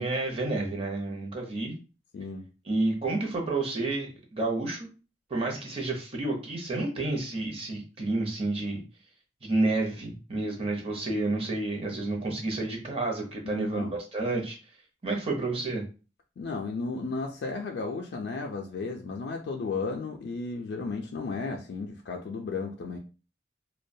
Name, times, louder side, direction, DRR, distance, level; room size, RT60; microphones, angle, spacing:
voice 1, 0.0-1.7 2.6-4.9 5.3-8.8 9.4-14.6 15.0-15.8, right 2 dB, 35° right, 0 dB, 0.6 m, -30 dB
voice 2, 2.1-2.5 13.4-13.9 16.4-23.0, left 4 dB, 70° left, 1 dB, 0.3 m, -34 dB
2.2 x 2.1 x 2.6 m, 0.34 s
head